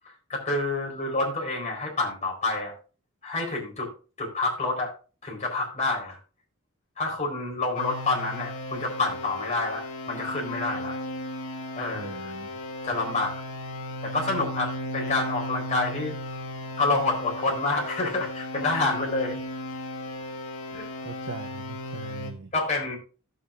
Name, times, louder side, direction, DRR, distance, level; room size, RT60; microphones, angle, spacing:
voice 1, 0.1-2.7 3.2-3.9 4.2-4.9 5.2-6.2 7.0-11.0 11.8-12.3 12.8-13.4 14.0-16.2 16.8-19.4 20.7-20.9 22.5-23.0, left 3 dB, 35° left, -1 dB, 4.2 m, -28 dB
sound 1, 7.7-22.3, left 1 dB, 85° left, 1.9 m, -36 dB
voice 2, 11.9-12.5 21.0-22.5, right 3 dB, 60° right, 6 dB, 0.7 m, -40 dB
15.0 x 7.8 x 2.5 m, 0.34 s
head